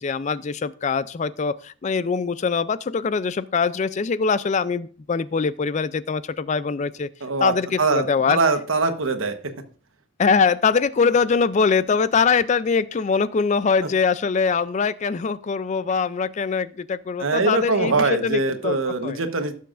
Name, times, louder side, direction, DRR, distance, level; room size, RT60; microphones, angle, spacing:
voice 1, 0.0-7.1 7.4-8.4 10.2-18.8 19.0-19.2, left 5 dB, 35° left, 16 dB, 0.4 m, -22 dB
voice 2, 7.2-9.3 17.2-19.5, right 3 dB, 80° right, 7 dB, 1.2 m, -22 dB
16.5 x 6.9 x 2.5 m, 0.42 s
head